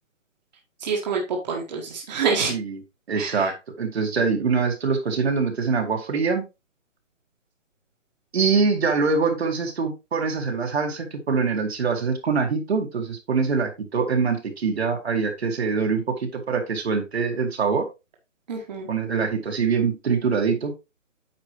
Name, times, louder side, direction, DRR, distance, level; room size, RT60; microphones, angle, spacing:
voice 1, 0.8-2.5 3.2-3.4 18.5-18.9, right 5 dB, 35° right, -1 dB, 1.8 m, -26 dB
voice 2, 2.5-2.8 3.1-6.5 8.3-17.9 18.9-20.7, right 5 dB, 55° right, 3 dB, 2.2 m, -24 dB
9.0 x 5.4 x 3.2 m, 0.26 s
hypercardioid pair, 170°, 37 cm